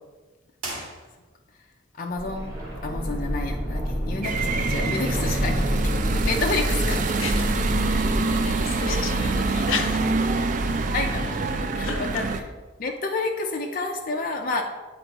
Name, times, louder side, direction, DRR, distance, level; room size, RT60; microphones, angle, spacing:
sound 1, 0.6-1.6, right 2 dB, 80° right, 2.0 m, -37 dB
voice 1, 2.0-2.5 2.8-7.0 8.9-9.0 10.9-12.3 12.8-14.6, left 3 dB, 45° left, 1 dB, 0.4 m, -29 dB
sound 2, 2.1-9.9 10.2-10.3, equal, 20° right, 1.4 m, -29 dB
sound 3, 4.2-12.4, right 3 dB, 40° right, 0.3 m, -25 dB
voice 2, 7.9-10.1 11.8-12.3, left 6 dB, 80° left, 5 dB, 0.7 m, -33 dB
8.4 x 4.4 x 2.9 m, 1.3 s
head